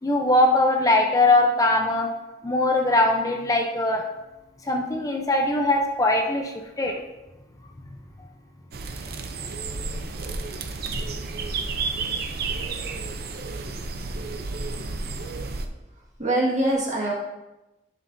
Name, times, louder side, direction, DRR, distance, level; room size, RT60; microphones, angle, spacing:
voice 1, 0.0-2.1 2.4-4.0 4.6-7.0, left 2 dB, 20° left, 2 dB, 0.6 m, -21 dB
sound 1, 8.7-15.7, right 3 dB, 60° right, 0.6 m, -31 dB
voice 2, 16.0-17.1, right 1 dB, 40° right, -3 dB, 1.8 m, -24 dB
11.0 x 6.4 x 2.7 m, 1.0 s
head